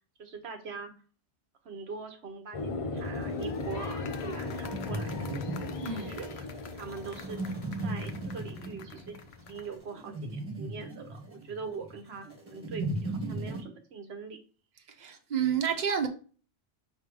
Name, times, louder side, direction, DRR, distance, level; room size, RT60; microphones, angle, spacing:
voice 1, 0.2-0.9 1.6-7.6 7.8-9.2 9.5-14.4, right 5 dB, 75° right, 1.1 m, -43 dB
sound 1, 2.5-9.4, left 3 dB, 35° left, 0.7 m, -38 dB
sound 2, 3.0-13.6, right 2 dB, 10° right, 1.8 m, -38 dB
sound 3, 3.1-9.8, left 7 dB, 75° left, 0.9 m, -48 dB
voice 2, 15.0-16.1, right 8 dB, 45° right, 1.0 m, -29 dB
5.9 x 3.3 x 5.2 m
omnidirectional pair, 1.1 m